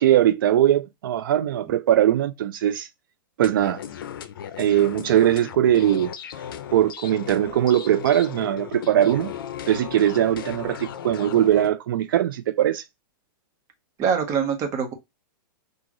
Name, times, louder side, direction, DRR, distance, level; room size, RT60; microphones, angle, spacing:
voice 1, 0.0-2.9 3.4-3.8 4.6-6.1 6.7-9.3 9.7-12.8, right 11 dB, 70° right, 0.5 m, -20 dB
sound 1, 3.4-11.7, left 9 dB, 70° left, 0.6 m, -36 dB
voice 2, 14.0-14.9, right 7 dB, 25° right, 1.1 m, -24 dB
6.2 x 2.5 x 3.0 m
supercardioid pair, 155°, 12 cm